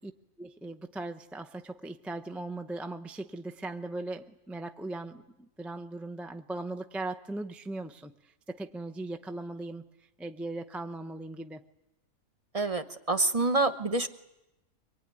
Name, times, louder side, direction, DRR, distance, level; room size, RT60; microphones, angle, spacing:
voice 1, 0.4-9.8 10.2-11.6, right 2 dB, ahead, 6 dB, 0.5 m, -39 dB
voice 2, 12.5-14.1, right 2 dB, 30° right, 10 dB, 1.0 m, -27 dB
24.5 x 23.0 x 9.8 m, 0.98 s
omnidirectional pair, 1.4 m